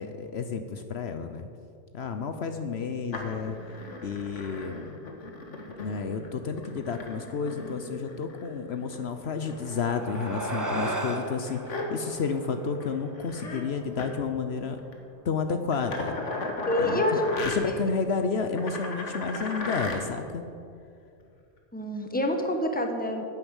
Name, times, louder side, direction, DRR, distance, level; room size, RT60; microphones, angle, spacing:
voice 1, 0.0-1.5 1.9-3.6 4.0-4.9 5.8-14.8 15.2-16.2 16.8-17.2 17.5-20.4, left 5 dB, 65° left, 7 dB, 1.0 m, -31 dB
sound 1, 3.1-9.0 9.4-12.4 12.7-12.9 13.2-13.6 13.9-14.1 14.8-15.0 15.7-17.6 18.6-20.0 21.2-21.3, left 2 dB, 90° left, 1.9 m, -37 dB
sound 2, 9.4-14.2, right 1 dB, 15° right, 1.1 m, -36 dB
voice 2, 16.7-17.7 19.3-19.4 21.7-23.2, left 1 dB, 10° left, 4 dB, 1.2 m, -27 dB
10.5 x 9.0 x 8.1 m, 2.5 s
omnidirectional pair, 1.2 m